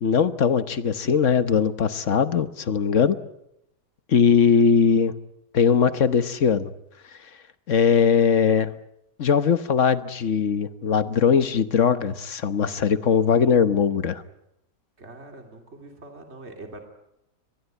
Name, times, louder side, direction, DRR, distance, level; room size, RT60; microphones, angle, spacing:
voice 1, 0.0-3.2 4.1-5.1 5.5-6.7 7.7-8.7 9.2-14.2, left 6 dB, 50° left, 12 dB, 1.3 m, -20 dB
voice 2, 15.0-16.8, right 2 dB, 40° right, 4 dB, 3.2 m, -43 dB
23.5 x 20.0 x 9.3 m, 0.81 s
omnidirectional pair, 1.8 m